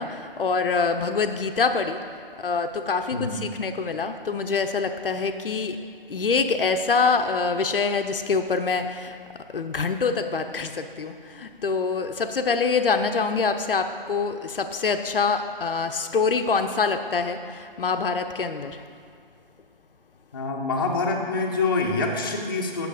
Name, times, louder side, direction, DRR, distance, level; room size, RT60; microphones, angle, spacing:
voice 1, 0.0-2.0 2.4-5.8 6.1-9.2 9.5-18.8, left 4 dB, 70° left, 7 dB, 0.6 m, -25 dB
voice 2, 3.1-3.4 20.3-22.9, left 3 dB, 25° left, -1 dB, 0.6 m, -26 dB
7.7 x 6.2 x 4.9 m, 2.2 s
figure-of-eight pair, 155°, 29 cm